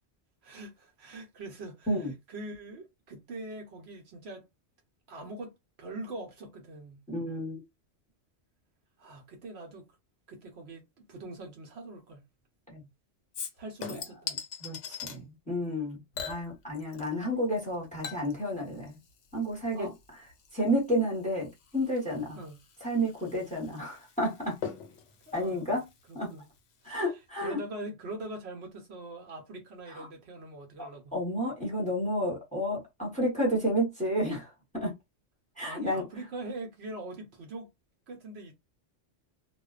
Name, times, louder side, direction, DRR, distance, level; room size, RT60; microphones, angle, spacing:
voice 1, 0.4-4.5 5.1-7.0 9.0-9.9 10.3-12.3 13.5-14.4 19.7-19.9 22.3-22.6 25.3-25.8 26.1-26.5 26.8-27.0 27.4-31.1 35.6-37.7 38.1-38.5, right 2 dB, 65° right, 0.9 m, -43 dB
voice 2, 7.1-7.6 12.7-12.8 14.6-19.0 19.3-19.9 20.5-22.4 22.8-24.6 25.3-25.9 26.1-26.3 26.8-27.6 29.9-30.1 30.8-34.9 35.6-36.0, equal, 5° left, 1.0 m, -31 dB
Chink clink / Liquid, 13.3-15.2 16.1-17.3 17.6-26.6 26.9-27.0, left 7 dB, 80° left, 1.0 m, -43 dB
2.4 x 2.2 x 2.4 m
omnidirectional pair, 1.2 m